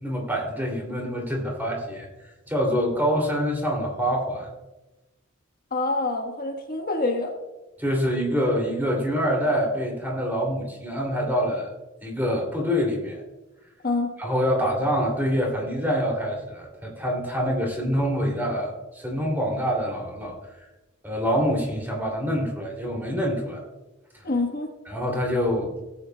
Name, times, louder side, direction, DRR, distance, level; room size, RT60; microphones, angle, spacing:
voice 1, 0.0-4.5 7.8-11.7 12.0-13.2 14.2-20.4 21.0-23.6 24.9-25.8, equal, 10° right, -1 dB, 2.7 m, -26 dB
voice 2, 5.7-7.3 13.8-14.1 24.2-24.7, left 2 dB, 45° left, 2 dB, 1.3 m, -26 dB
18.0 x 8.7 x 2.2 m, 1.1 s
head